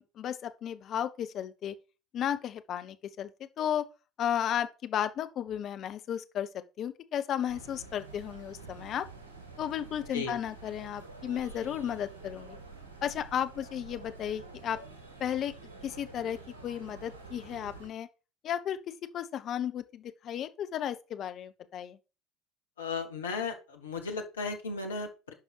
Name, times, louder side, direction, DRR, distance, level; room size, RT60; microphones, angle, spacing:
voice 1, 0.0-1.7 2.1-3.3 3.6-3.9 4.2-6.5 6.8-9.1 9.6-12.6 13.0-14.8 15.2-15.5 15.8-16.4 16.6-18.1 18.4-22.0, left 10 dB, 45° left, 1.0 m, -34 dB
sound 1, 7.5-17.9, right 3 dB, 75° right, 1.9 m, -48 dB
voice 2, 22.8-25.3, left 4 dB, 75° left, 1.6 m, -35 dB
10.5 x 5.4 x 4.7 m
figure-of-eight pair, 65°, 0 cm